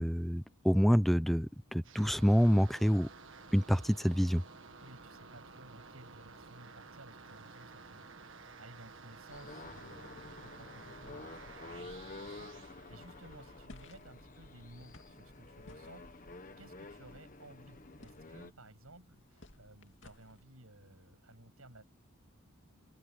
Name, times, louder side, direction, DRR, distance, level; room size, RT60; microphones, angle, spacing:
voice 1, 0.0-3.1 3.5-4.4, equal, ahead, 0.7 m, -27 dB
sound 1, 1.8-13.7, right 4 dB, 60° right, 1.8 m, -53 dB
voice 2, 4.8-21.8, right 1 dB, 80° right, 8.0 m, -57 dB
sound 2, 9.3-18.5, left 2 dB, 40° left, 1.5 m, -50 dB
sound 3, 13.7-20.4, left 1 dB, 60° left, 2.6 m, -59 dB
open air
head